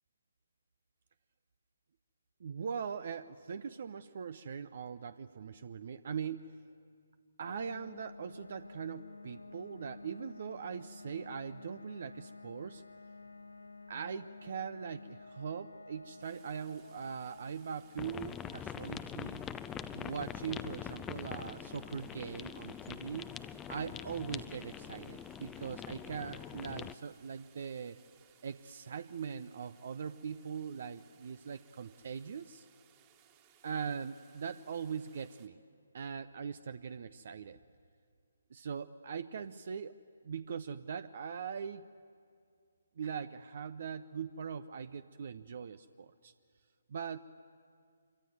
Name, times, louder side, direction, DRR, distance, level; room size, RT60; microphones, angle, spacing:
voice 1, 2.4-6.6 7.4-12.8 13.9-19.4 19.9-23.3 23.7-28.0 28.4-32.6 33.6-35.6 35.9-37.6 38.5-41.9 43.0-46.3 46.9-47.2, right 6 dB, 50° right, 14 dB, 0.6 m, -41 dB
sound 1, 7.5-22.1, left 3 dB, 75° left, 0.7 m, -53 dB
sound 2, 16.2-35.5, right 9 dB, 25° right, 2.0 m, -66 dB
sound 3, 18.0-26.9, left 8 dB, 10° left, 0.6 m, -44 dB
26.0 x 24.0 x 9.4 m, 2.3 s
figure-of-eight pair, 140°, 0 cm